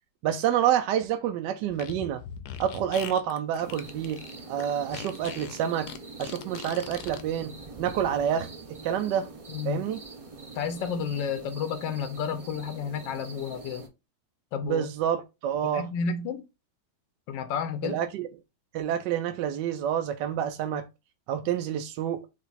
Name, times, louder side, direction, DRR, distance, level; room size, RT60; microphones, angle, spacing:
voice 1, 0.2-2.2 2.6-4.2 4.5-5.9 6.2-9.3 9.7-10.0 14.6-15.9 17.8-18.3 18.7-20.9 21.3-22.3, right 9 dB, 75° right, 1.2 m, -28 dB
Fart, 1.7-7.2, left 9 dB, 70° left, 1.1 m, -41 dB
sound 1, 3.6-13.9, right 3 dB, 45° right, 0.4 m, -44 dB
voice 2, 9.5-9.8 10.5-13.9 14.5-14.9 15.7-16.4 17.3-18.0, left 6 dB, 90° left, 1.3 m, -31 dB
5.0 x 2.5 x 4.0 m
omnidirectional pair, 1.9 m